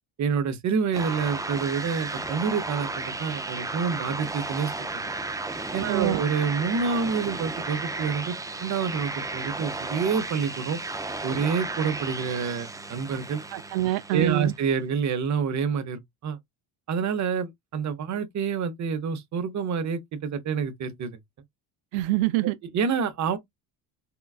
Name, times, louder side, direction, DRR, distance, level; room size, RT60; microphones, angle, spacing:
voice 1, 0.2-5.1 5.7-8.4 8.6-10.8 11.2-13.4 14.1-16.4 16.9-21.2 22.7-23.4, right 6 dB, 40° right, 0.8 m, -28 dB
sound 1, 0.9-14.6, right 3 dB, 10° right, 0.3 m, -34 dB
voice 2, 5.9-6.2 13.5-14.5 21.9-22.6, right 16 dB, 85° right, 0.5 m, -25 dB
3.7 x 2.3 x 2.3 m
cardioid pair, 110°, 45 cm